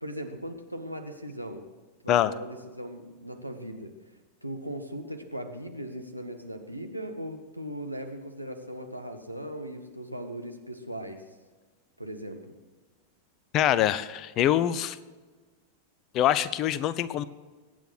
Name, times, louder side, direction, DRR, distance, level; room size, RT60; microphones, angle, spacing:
voice 1, 0.0-1.7 2.0-3.9 4.4-11.2 12.0-12.6, equal, 90° right, 4 dB, 1.6 m, -38 dB
voice 2, 13.5-15.0 16.1-17.2, left 11 dB, 35° left, 17 dB, 0.8 m, -24 dB
22.5 x 9.2 x 6.2 m, 1.3 s
figure-of-eight pair, 90°, 0 cm